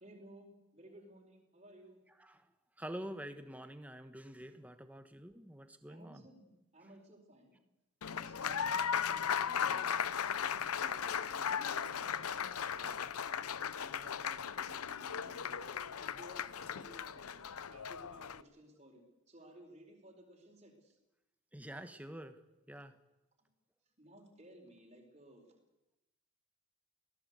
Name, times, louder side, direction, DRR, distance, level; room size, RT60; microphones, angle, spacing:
voice 1, 0.0-2.0 5.9-7.6 8.1-21.0 23.4-23.5 24.0-25.4, right 1 dB, 30° right, 2 dB, 4.5 m, -58 dB
voice 2, 2.2-2.5 2.8-6.3 8.4-8.8 21.5-22.4 22.7-22.9, right 1 dB, 5° right, 9 dB, 1.2 m, -47 dB
Applause, 8.0-18.4, left 7 dB, 90° left, 0.7 m, -37 dB
23.5 x 17.5 x 8.2 m, 0.97 s
head